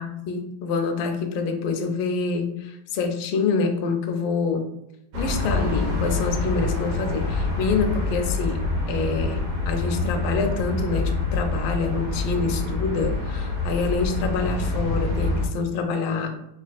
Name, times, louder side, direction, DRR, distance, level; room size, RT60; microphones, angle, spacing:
voice 1, 0.0-4.7 5.1-8.6 8.9-16.3, left 4 dB, 75° left, 5 dB, 1.3 m, -26 dB
sound 1, 5.1-15.5, left 2 dB, 80° right, 1.9 m, -26 dB
4.2 x 2.9 x 2.3 m, 0.82 s
omnidirectional pair, 2.4 m